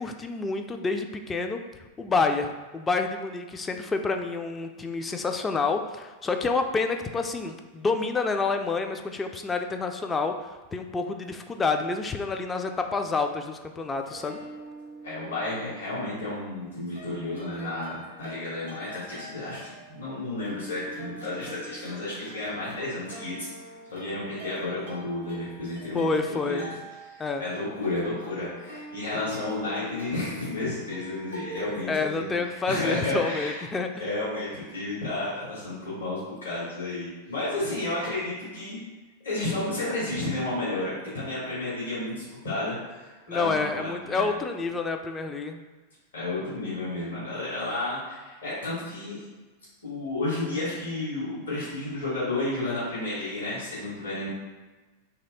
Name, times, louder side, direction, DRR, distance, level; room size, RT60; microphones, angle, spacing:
voice 1, 0.0-1.6 2.0-10.3 10.7-14.4 25.9-26.7 27.2-27.4 31.9-34.0 43.3-45.6, left 4 dB, 15° left, 5 dB, 0.3 m, -28 dB
sound 1, 14.0-16.5 16.9-31.9, left 1 dB, 85° left, 1.3 m, -43 dB
voice 2, 15.0-23.5 23.9-26.7 27.0-31.9 32.1-33.6 34.0-38.8 39.2-44.3 46.1-49.2 49.8-54.3, left 2 dB, 70° left, -9 dB, 1.4 m, -32 dB
3.1 x 2.7 x 3.9 m, 1.2 s
figure-of-eight pair, 90°, 0 cm